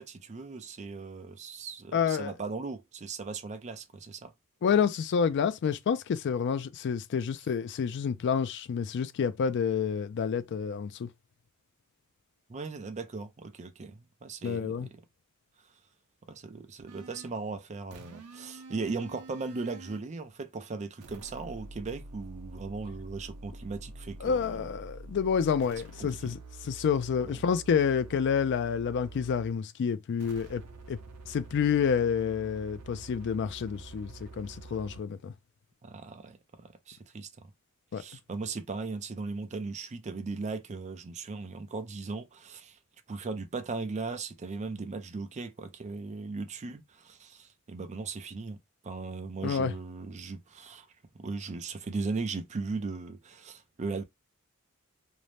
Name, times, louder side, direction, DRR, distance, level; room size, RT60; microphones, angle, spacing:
voice 1, 0.0-4.3 12.5-15.0 16.3-24.7 26.0-26.3 35.8-37.5 37.9-42.8 43.1-48.6 48.8-50.9 51.1-54.0, right 4 dB, 30° right, 0.4 m, -38 dB
voice 2, 1.9-2.3 4.6-11.1 14.4-14.9 24.2-26.4 26.6-30.6 30.9-31.0 31.3-35.3 37.9-38.0 49.4-49.7, left 6 dB, 55° left, 0.3 m, -28 dB
sound 1, 16.9-17.4 17.9-20.1 21.0-29.6 30.2-35.0, right 3 dB, 90° right, 0.6 m, -47 dB
2.6 x 2.1 x 3.1 m
head